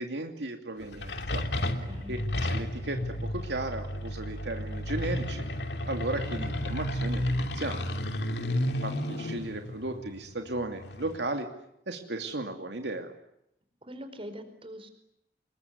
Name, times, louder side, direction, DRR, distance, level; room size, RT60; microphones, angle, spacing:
voice 1, 0.0-1.4 2.1-5.4 5.9-7.8 8.8-11.5 11.9-13.1, right 2 dB, 75° right, 4 dB, 2.7 m, -35 dB
sound 1, 0.8-11.2, left 1 dB, 70° left, 2.9 m, -32 dB
voice 2, 1.6-2.1 13.8-14.9, equal, 30° right, 8 dB, 4.7 m, -43 dB
26.5 x 22.5 x 9.6 m, 0.80 s
head